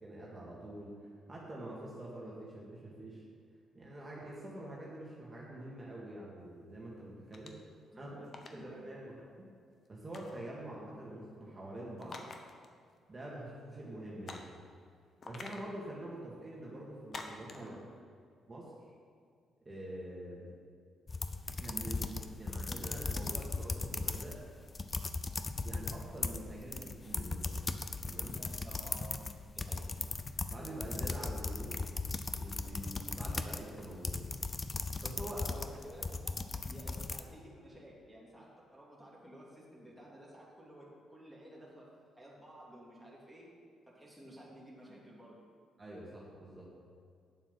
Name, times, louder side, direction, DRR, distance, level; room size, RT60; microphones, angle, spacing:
voice 1, 0.0-3.2 3.7-7.6 8.0-8.1 8.5-9.1 9.4-9.5 9.9-12.2 13.1-14.5 15.2-17.8 18.5-18.7 19.7-20.5 21.5-24.4 25.6-27.6 28.0-28.4 30.4-31.8 32.4-34.3 35.0-35.5 45.8-46.7, right 1 dB, 25° right, -5 dB, 2.1 m, -45 dB
sound 1, 7.3-7.7 8.2-8.6 10.1-10.4 12.0-12.7 13.0-13.1 14.3-14.6 15.2-15.7 17.1-17.7, left 3 dB, 45° left, 1.0 m, -46 dB
voice 2, 7.9-8.9 17.5-17.9 28.4-29.9 35.4-36.4 36.7-43.5 43.9-45.4, right 1 dB, ahead, -5 dB, 2.5 m, -53 dB
sound 2, 21.1-24.4 24.7-37.2, left 3 dB, 30° left, 0.5 m, -38 dB
8.8 x 7.2 x 5.6 m, 2.2 s
cardioid pair, 90°, 0 cm